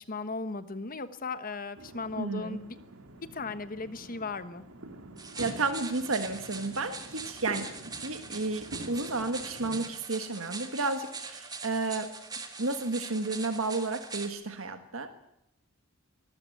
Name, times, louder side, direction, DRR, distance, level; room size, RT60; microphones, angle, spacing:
voice 1, 0.0-2.8 3.3-4.7, left 3 dB, 40° left, 12 dB, 1.2 m, -37 dB
sound 1, 1.8-9.8, right 2 dB, 85° right, 2.3 m, -46 dB
voice 2, 2.2-2.6 5.4-7.7 8.0-12.1 12.6-15.1, right 3 dB, 70° right, 8 dB, 1.5 m, -32 dB
sound 2, 5.2-14.3, right 4 dB, 20° right, 1.9 m, -42 dB
23.0 x 14.0 x 9.2 m, 0.83 s
head